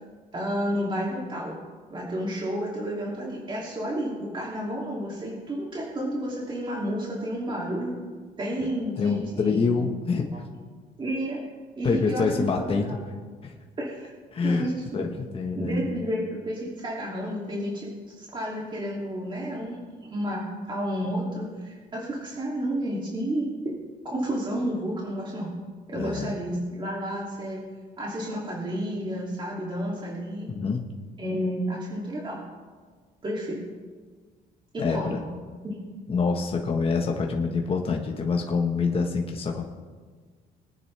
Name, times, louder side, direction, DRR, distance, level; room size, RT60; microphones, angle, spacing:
voice 1, 0.3-1.6 1.9-7.9 8.4-9.8 10.3-10.4 11.0-11.4 11.7-13.0 13.8-14.1 14.4-15.1 15.5-23.5 24.0-25.5 25.9-27.6 28.0-30.5 31.2-32.4 33.2-33.6 34.7-35.3 35.6-35.8, equal, 30° right, -4 dB, 2.9 m, -31 dB
voice 2, 9.0-10.3 11.8-13.0 13.4-13.5 14.3-14.6 14.9-15.7 25.9-26.3 30.5-30.9 34.8-35.2 36.1-39.6, left 4 dB, 35° left, 1 dB, 1.4 m, -26 dB
22.5 x 9.6 x 3.4 m, 1.5 s
cardioid pair, 110°, 17 cm